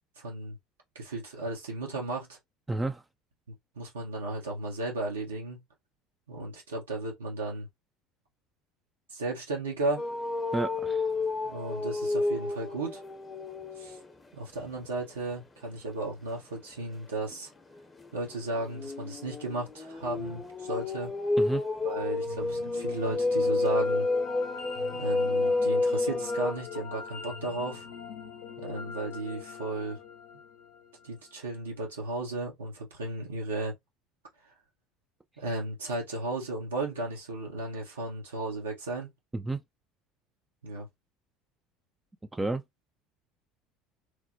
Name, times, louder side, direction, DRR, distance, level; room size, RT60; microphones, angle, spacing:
voice 1, 0.2-0.6 0.9-2.4 3.5-5.6 6.3-7.7 9.1-10.0 11.4-13.0 13.8-14.0 14.3-17.5 18.1-21.1 21.8-24.1 24.9-27.8 28.6-30.0 31.0-33.7 35.4-39.1 40.6-40.9, right 2 dB, 85° right, 1.1 m, -35 dB
voice 2, 2.7-3.0 10.5-11.1 21.4-21.6 39.3-39.6 42.3-42.6, right 2 dB, 15° right, 0.4 m, -31 dB
sound 1, 10.0-14.1 14.5-14.9 17.3-26.5, left 2 dB, 25° left, 0.7 m, -30 dB
sound 2, 22.2-31.4, left 6 dB, 65° left, 0.6 m, -42 dB
3.1 x 2.1 x 2.6 m
hypercardioid pair, 70°, 0 cm